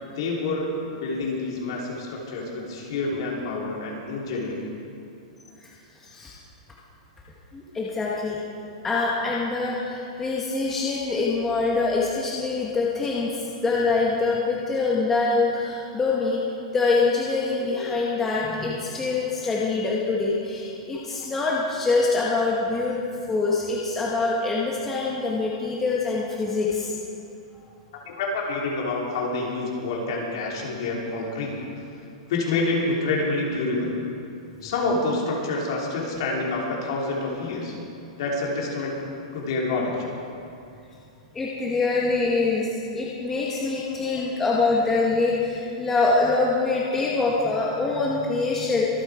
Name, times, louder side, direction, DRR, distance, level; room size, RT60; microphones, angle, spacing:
voice 1, 0.0-4.6 28.0-31.6 32.3-34.0 34.6-37.8 38.2-39.0 39.3-40.1, left 3 dB, 50° left, -2 dB, 3.0 m, -27 dB
voice 2, 7.5-8.4 8.8-16.4 16.7-23.0 23.3-26.9 41.3-42.7 42.9-48.9, left 3 dB, 10° left, -4 dB, 0.9 m, -24 dB
24.5 x 8.3 x 4.8 m, 2.6 s
supercardioid pair, 175°, 4 cm